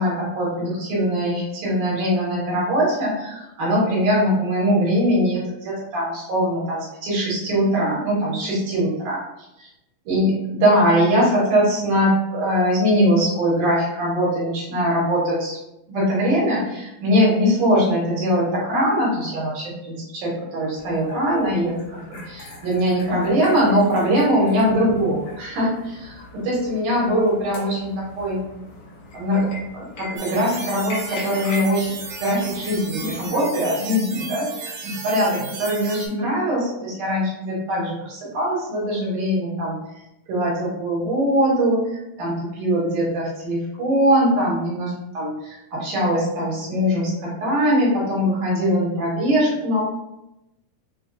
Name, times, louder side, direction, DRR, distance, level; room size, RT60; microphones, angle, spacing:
voice 1, 0.0-9.2 9.6-9.7 10.1-15.6 15.9-28.4 29.1-31.9 32.2-39.8 40.3-41.8 42.2-49.8, equal, 70° right, -5 dB, 2.3 m, -21 dB
sound 1, 20.7-33.3, left 2 dB, 80° left, 2.9 m, -40 dB
sound 2, 30.2-36.1, right 4 dB, 85° right, 1.5 m, -34 dB
6.9 x 2.3 x 2.5 m, 0.91 s
omnidirectional pair, 4.3 m